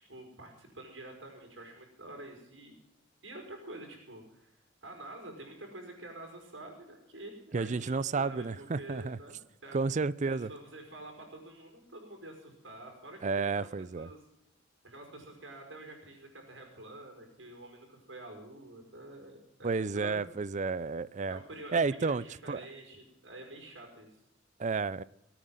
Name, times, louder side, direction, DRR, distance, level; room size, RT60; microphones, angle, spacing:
voice 1, 0.1-2.7 3.2-4.6 4.8-9.8 10.3-13.7 13.9-14.2 14.8-20.2 21.3-24.1, right 1 dB, 75° right, 3 dB, 5.1 m, -48 dB
voice 2, 7.5-9.2 9.7-10.5 13.2-14.1 19.6-21.4 21.7-22.6 24.6-25.0, right 4 dB, 40° right, 20 dB, 0.5 m, -31 dB
19.0 x 9.2 x 7.8 m, 0.83 s
head